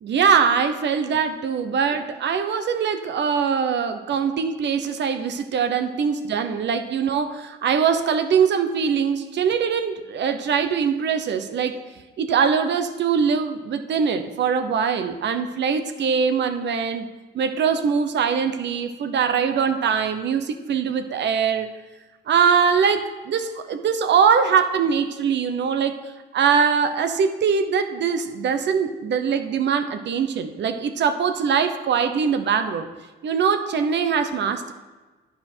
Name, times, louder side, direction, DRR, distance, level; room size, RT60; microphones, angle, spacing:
voice 1, 0.0-11.8 12.2-17.1 17.3-21.7 22.3-25.9 26.3-32.9 33.2-34.7, right 6 dB, 65° right, 8 dB, 0.9 m, -22 dB
11.0 x 8.7 x 4.5 m, 1.3 s
cardioid pair, 90°, 20 cm